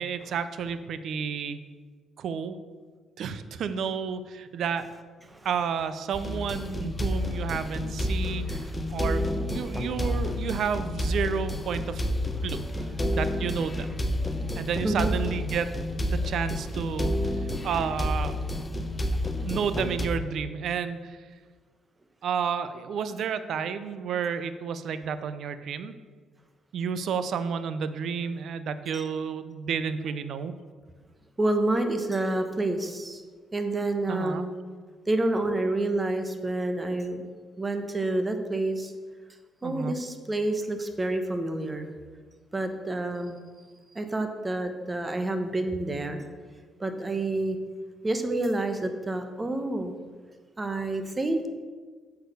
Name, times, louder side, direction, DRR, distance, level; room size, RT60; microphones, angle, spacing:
voice 1, 0.0-1.6 2.2-2.6 3.2-4.9 5.4-12.0 12.4-12.6 13.1-14.0 14.6-15.7 16.0-18.4 19.4-21.2 22.2-25.9 26.7-30.5 34.1-34.4 39.6-39.9, right 6 dB, 70° right, 12 dB, 0.5 m, -31 dB
sound 1, 6.1-20.1, left 1 dB, 15° left, 0.8 m, -30 dB
voice 2, 31.4-33.2 33.5-34.5 35.1-37.3 37.6-38.9 39.6-41.9 42.5-43.4 43.9-46.2 46.8-47.6 48.0-49.9 50.6-51.5, right 2 dB, 20° right, 7 dB, 1.0 m, -28 dB
7.9 x 4.8 x 6.6 m, 1.5 s
cardioid pair, 90°, 0 cm